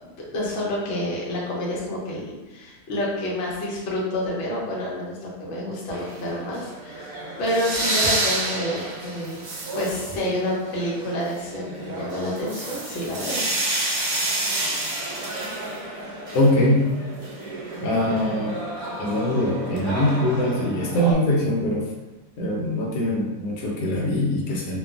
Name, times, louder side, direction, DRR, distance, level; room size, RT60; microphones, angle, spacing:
voice 1, 0.0-9.5 9.7-13.5, left 1 dB, 55° left, -5 dB, 0.8 m, -28 dB
sound 1, 5.9-21.1, right 2 dB, 70° right, 1.0 m, -30 dB
voice 2, 16.3-16.9 17.8-18.6 19.0-21.9 22.4-24.8, left 1 dB, 85° left, -3 dB, 1.3 m, -22 dB
2.9 x 2.2 x 2.4 m, 1.1 s
omnidirectional pair, 1.7 m